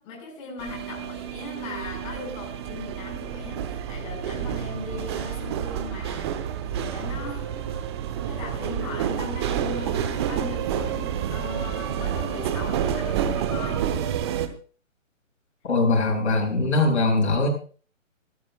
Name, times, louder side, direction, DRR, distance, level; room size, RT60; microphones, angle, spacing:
voice 1, 0.0-6.4 6.7-7.9 8.3-13.9, left 5 dB, 25° left, 2 dB, 5.4 m, -39 dB
sound 1, 0.6-14.5, right 9 dB, 20° right, 0.9 m, -29 dB
voice 2, 15.6-17.5, left 3 dB, 55° left, 0 dB, 7.8 m, -21 dB
25.5 x 14.0 x 2.4 m, 0.40 s
figure-of-eight pair, 140°, 39 cm